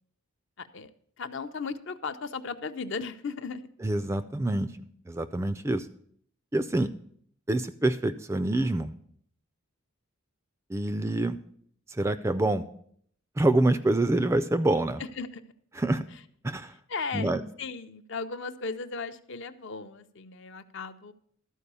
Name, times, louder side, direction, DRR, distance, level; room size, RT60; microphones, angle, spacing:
voice 1, 0.6-3.7 15.0-15.4 16.1-16.2 16.9-17.3 17.6-21.1, left 4 dB, 55° left, 10 dB, 0.6 m, -36 dB
voice 2, 3.8-4.7 5.1-5.9 6.5-6.9 7.5-8.9 10.7-11.4 11.9-12.6 13.4-15.0 15.8-16.1 16.4-16.7 17.1-17.4, right 2 dB, 15° right, 12 dB, 0.3 m, -26 dB
13.0 x 4.7 x 6.8 m, 0.63 s
head